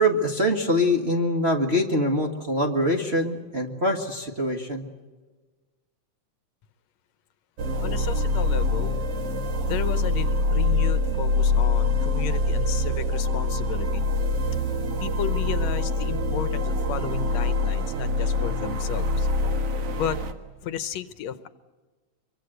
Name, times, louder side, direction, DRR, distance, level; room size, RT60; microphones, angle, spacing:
voice 1, 0.0-4.8, equal, 25° right, 0 dB, 1.5 m, -24 dB
sound 1, 7.6-20.3, left 2 dB, 55° right, 2.5 m, -24 dB
voice 2, 7.8-9.0 9.6-14.1 15.0-19.3 20.0-20.2 20.6-21.5, left 9 dB, 70° left, 12 dB, 2.0 m, -33 dB
25.0 x 23.5 x 7.8 m, 1.3 s
omnidirectional pair, 3.3 m